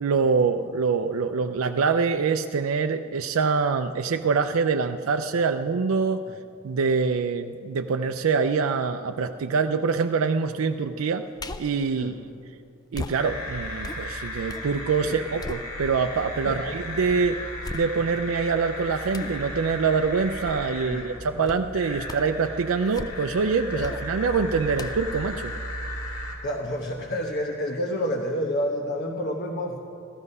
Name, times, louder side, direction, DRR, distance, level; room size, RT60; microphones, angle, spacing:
voice 1, 0.0-6.2 6.6-11.2 11.6-12.1 12.9-17.4 17.7-25.5, right 5 dB, 80° right, 7 dB, 0.4 m, -25 dB
sound 1, 11.4-11.8 12.9-14.7 15.1-16.2 16.7-16.8 17.6-18.3 19.1-19.4 21.4-21.7 22.0-22.4 22.8-23.4 23.8-24.1 24.7-26.4 26.8-26.9, left 2 dB, 20° left, 0.4 m, -39 dB
sound 2, 13.1-26.4, left 1 dB, 85° left, 2.4 m, -35 dB
voice 2, 26.4-29.8, equal, 50° left, 1 dB, 1.0 m, -29 dB
14.5 x 13.5 x 5.4 m, 2.5 s
head